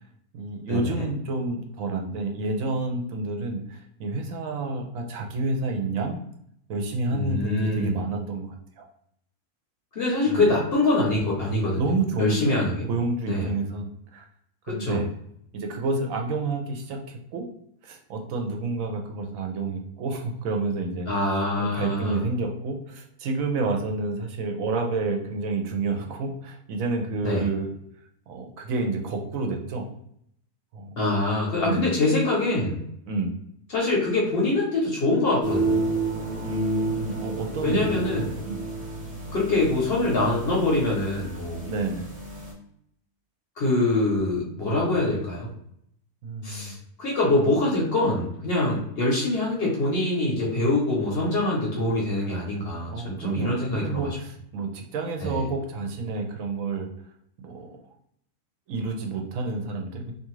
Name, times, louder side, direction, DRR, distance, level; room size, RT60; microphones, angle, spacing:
voice 1, 0.3-6.2 6.7-8.9 10.3-10.5 11.8-14.3 14.7-15.0 15.5-17.5 17.8-21.1 21.6-27.7 28.3-29.9 30.7-31.0 31.6-31.9 33.1-33.3 36.4-38.6 41.6-42.1 46.2-46.8 52.9-56.9 57.4-57.8 58.7-60.1, right 3 dB, 70° right, 3 dB, 0.9 m, -29 dB
voice 2, 7.1-8.0 9.9-11.8 12.2-12.9 13.3-13.5 14.7-15.0 21.1-22.2 27.2-27.5 31.0-32.8 33.7-35.8 37.6-38.3 39.3-41.7 43.6-45.5 46.4-54.1 55.2-55.5, left 2 dB, 50° left, -3 dB, 0.8 m, -24 dB
sound 1, 35.4-42.5, right 3 dB, 5° right, 0.7 m, -31 dB
2.5 x 2.4 x 3.0 m, 0.72 s
omnidirectional pair, 1.6 m